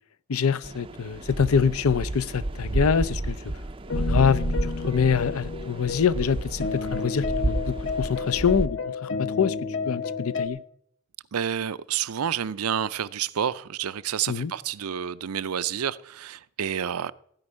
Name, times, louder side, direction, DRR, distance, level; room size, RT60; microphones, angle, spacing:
voice 1, 0.3-3.5 3.9-9.6 9.9-10.6 14.3-14.5, left 6 dB, 75° left, 0.6 m, -25 dB
sound 1, 0.6-8.7, right 1 dB, 25° right, 0.4 m, -31 dB
sound 2, 3.9-10.5, left 5 dB, 55° left, 1.0 m, -31 dB
voice 2, 11.3-17.1, right 8 dB, 85° right, 0.5 m, -29 dB
16.0 x 5.3 x 9.8 m
head